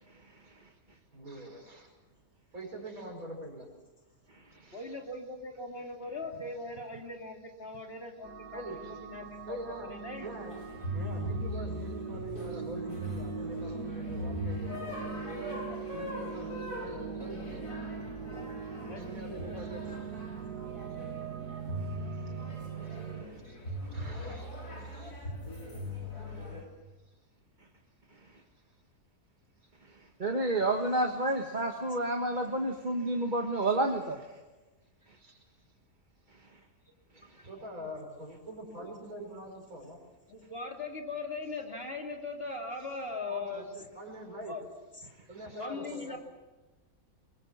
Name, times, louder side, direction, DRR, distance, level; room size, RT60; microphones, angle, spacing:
voice 1, 1.1-1.9 2.5-3.7 4.5-4.9 8.5-9.0 9.5-9.9 10.2-10.6 10.9-17.9 19.0-20.1 22.9-23.0 23.4-25.2 26.4-26.5 28.5-28.6 29.6-29.7 30.6-30.7 33.5-33.7 35.1-35.4 37.3-40.0 43.3-43.6 44.0-44.5 45.2-46.2, right 1 dB, 60° right, 1 dB, 6.2 m, -44 dB
voice 2, 4.7-8.6 8.9-9.7 10.0-10.3 18.9-19.6 38.8-38.9 40.3-43.8 44.5-44.6 45.0-45.1 45.6-46.2, left 3 dB, 40° left, 1 dB, 3.1 m, -40 dB
sound 1, 8.2-23.2, right 6 dB, 90° right, 1.7 m, -41 dB
sound 2, 10.4-26.6, left 1 dB, 80° left, 6.6 m, -40 dB
voice 3, 30.2-34.2, right 2 dB, 30° right, 2 dB, 1.6 m, -29 dB
23.0 x 21.5 x 7.3 m, 1.2 s
omnidirectional pair, 1.6 m